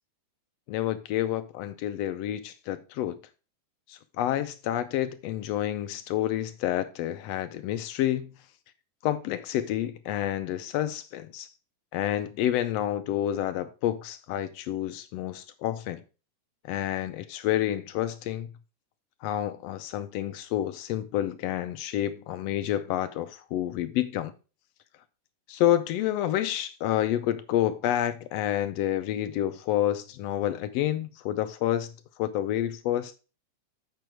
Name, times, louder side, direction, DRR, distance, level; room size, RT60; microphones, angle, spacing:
voice 1, 0.7-3.2 3.9-8.3 9.0-11.5 11.9-16.0 16.7-18.5 19.2-24.3 25.5-31.9 32.2-33.2, left 12 dB, 80° left, 1.5 m, -29 dB
7.8 x 5.8 x 4.5 m
omnidirectional pair, 3.3 m